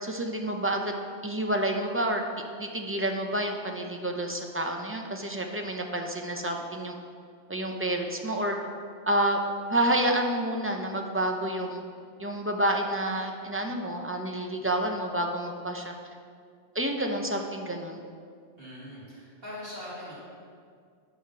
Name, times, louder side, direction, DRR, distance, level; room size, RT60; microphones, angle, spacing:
voice 1, 0.0-0.9 1.2-2.2 2.6-7.0 7.5-8.6 9.1-9.4 9.7-11.8 12.2-15.9 16.7-18.0, right 1 dB, 15° right, 2 dB, 0.6 m, -29 dB
voice 2, 18.6-20.1, left 1 dB, 60° right, -10 dB, 2.9 m, -41 dB
10.5 x 5.1 x 6.0 m, 2.2 s
omnidirectional pair, 1.1 m